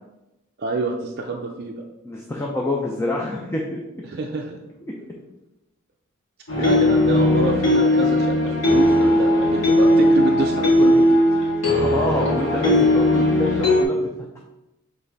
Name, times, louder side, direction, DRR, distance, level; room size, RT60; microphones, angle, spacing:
voice 1, 0.6-1.7 4.1-4.6 6.6-11.4, right 2 dB, 50° right, 1 dB, 0.5 m, -27 dB
voice 2, 2.0-3.8 6.6-6.7 11.7-14.0, left 1 dB, 10° left, -2 dB, 0.6 m, -26 dB
sound 1, 6.5-13.8, left 1 dB, 60° left, 1.7 m, -18 dB
7.0 x 3.3 x 4.1 m, 0.95 s
head